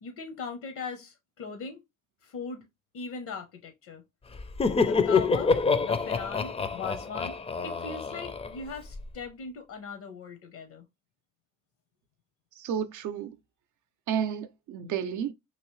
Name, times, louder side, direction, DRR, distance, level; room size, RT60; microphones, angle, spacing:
voice 1, 0.0-1.8 2.2-2.6 2.9-4.0 4.8-5.6 5.8-7.3 7.6-10.8, left 5 dB, 75° left, 0.8 m, -39 dB
Laughter, 4.3-9.0, left 4 dB, 20° left, 0.4 m, -27 dB
voice 2, 12.6-13.4 14.1-15.3, right 8 dB, 75° right, 0.5 m, -31 dB
3.0 x 2.7 x 3.0 m
cardioid pair, 90°, 30 cm